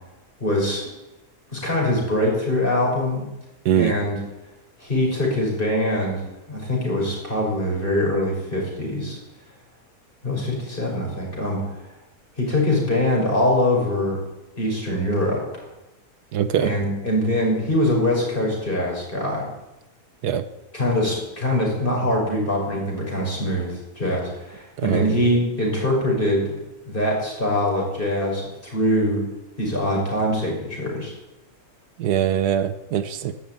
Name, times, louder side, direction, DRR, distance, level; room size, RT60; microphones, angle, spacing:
voice 1, 0.4-0.8 1.5-3.2 3.7-4.2 4.8-9.2 10.2-11.7 12.4-14.2 14.6-15.6 16.6-19.5 20.7-26.4 26.8-29.2 29.6-31.1, left 1 dB, 35° left, -2 dB, 6.2 m, -23 dB
voice 2, 16.3-16.7 20.2-20.4 24.8-25.1 32.0-33.3, right 9 dB, 85° right, 12 dB, 1.5 m, -22 dB
13.5 x 11.0 x 9.0 m, 0.98 s
omnidirectional pair, 1.6 m